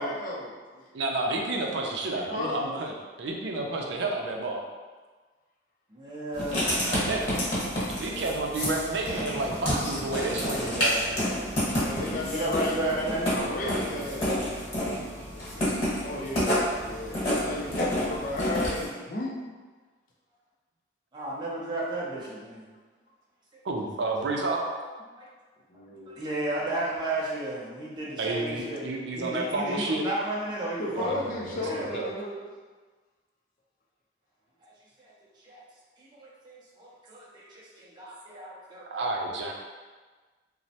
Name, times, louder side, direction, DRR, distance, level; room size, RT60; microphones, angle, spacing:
voice 1, 0.0-0.8 2.1-2.8 11.8-14.4 16.0-19.4 25.8-26.2 30.8-32.4, left 1 dB, 50° left, -3 dB, 0.5 m, -34 dB
voice 2, 0.9-4.6 6.8-7.3 8.0-11.2 23.6-24.7 28.2-30.1 30.9-32.1 38.9-39.5, right 2 dB, 80° right, 0 dB, 0.4 m, -30 dB
voice 3, 5.9-6.8 12.0-14.4 21.1-22.7 24.6-24.7 26.1-28.8 29.1-31.9 34.6-34.7 35.0-35.1 35.4-35.6 36.0-39.3, right 2 dB, 25° right, -6 dB, 0.5 m, -34 dB
Writing, 6.3-18.9, equal, 35° left, 1.0 m, -29 dB
3.0 x 2.0 x 2.7 m, 1.4 s
head